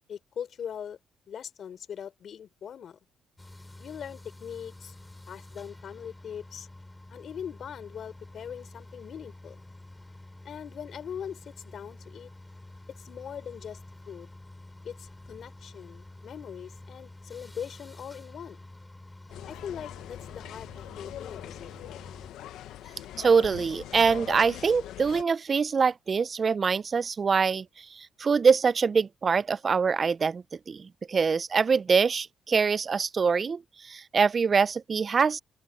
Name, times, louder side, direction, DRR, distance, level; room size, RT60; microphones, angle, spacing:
voice 1, 0.1-1.0 1.3-3.0 3.8-4.9 5.3-6.7 7.1-9.6 10.4-12.3 12.9-13.8 14.1-14.3 14.8-18.6 19.5-21.8, left 8 dB, 60° left, 4.3 m, -41 dB
sound 1, 3.4-22.3, left 2 dB, 15° left, 3.4 m, -48 dB
sound 2, 19.3-25.2, left 12 dB, 85° left, 0.7 m, -42 dB
voice 2, 23.2-35.4, right 5 dB, 40° right, 0.3 m, -24 dB
open air
cardioid pair, 90°, 0 cm